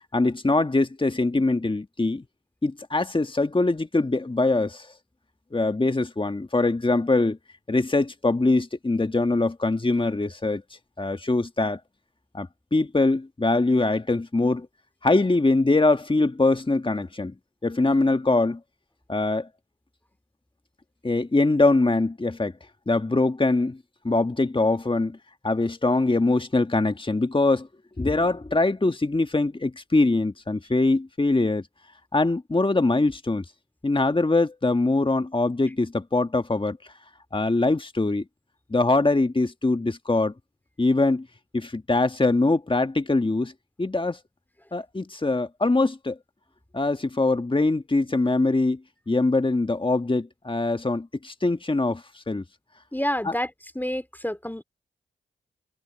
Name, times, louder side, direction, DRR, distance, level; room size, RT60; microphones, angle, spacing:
voice 1, 0.1-2.2 2.6-4.9 5.5-7.4 7.7-10.6 11.0-11.8 12.3-14.7 15.0-17.3 17.6-18.6 19.1-19.5 21.0-22.5 22.9-23.8 24.0-25.2 25.4-27.7 28.0-31.6 32.1-33.4 33.8-36.8 37.3-38.2 38.7-40.3 40.8-41.3 41.5-43.5 43.8-44.2 44.7-46.2 46.7-48.8 49.1-52.4 53.2-53.3, left 2 dB, 25° left, 1.7 m, -23 dB
voice 2, 52.9-53.5 53.7-54.6, left 1 dB, 10° left, 2.8 m, -28 dB
supercardioid pair, 40°, 21 cm